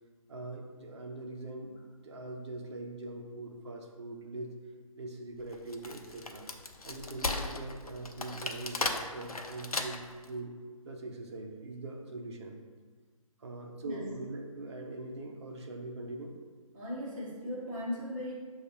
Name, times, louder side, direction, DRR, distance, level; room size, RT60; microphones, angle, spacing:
voice 1, 0.3-4.5 4.9-6.5 6.8-10.5 10.8-12.6 13.4-16.3, right 2 dB, 50° right, 2 dB, 0.6 m, -42 dB
Wood, 5.5-10.2, left 3 dB, 90° left, 0.5 m, -36 dB
voice 2, 16.7-18.3, left 1 dB, 15° right, -9 dB, 0.9 m, -37 dB
6.3 x 2.4 x 2.9 m, 1.5 s
figure-of-eight pair, 140°, 18 cm